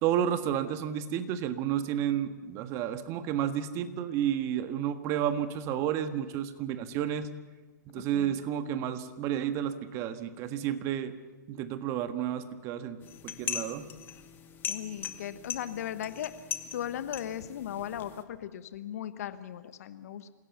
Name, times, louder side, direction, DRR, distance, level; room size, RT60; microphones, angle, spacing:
voice 1, 0.0-7.3 7.9-11.1 11.5-13.9, right 10 dB, 30° right, 9 dB, 1.5 m, -31 dB
voice 2, 7.9-8.4 14.6-16.3 16.7-20.3, left 10 dB, 50° left, 12 dB, 1.2 m, -37 dB
sound 1, 13.0-18.2, left 9 dB, 20° left, 1.2 m, -39 dB
27.5 x 16.5 x 7.1 m, 1.3 s
hypercardioid pair, 130°, 10 cm